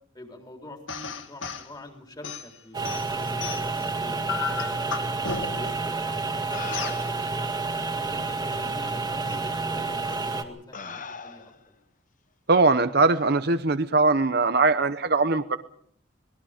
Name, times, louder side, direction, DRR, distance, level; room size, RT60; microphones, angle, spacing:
voice 1, 0.1-5.1 5.5-6.2 7.8-11.8, left 1 dB, 20° left, 3 dB, 4.0 m, -45 dB
sound 1, 0.9-1.7 2.2-3.8 4.3-5.8 6.7-7.0, left 6 dB, 80° left, 2.0 m, -34 dB
sound 2, 2.7-10.4, right 3 dB, 20° right, 2.0 m, -29 dB
sound 3, 5.9-6.0 6.5-7.4 8.3-8.4 9.3-9.4 10.1-10.3 10.7-11.7 13.0-13.2, left 5 dB, 40° left, 1.0 m, -41 dB
voice 2, 12.5-15.6, right 3 dB, 55° right, 10 dB, 0.8 m, -21 dB
27.0 x 20.5 x 5.1 m, 0.63 s
head